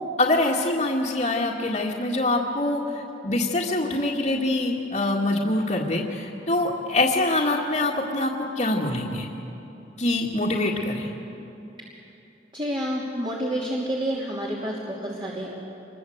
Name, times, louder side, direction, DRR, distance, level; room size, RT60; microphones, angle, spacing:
voice 1, 0.2-9.3 10.0-11.1, left 2 dB, 40° left, -6 dB, 2.1 m, -24 dB
voice 2, 12.5-15.5, equal, 30° right, -4 dB, 2.9 m, -29 dB
27.0 x 22.5 x 8.1 m, 2.9 s
head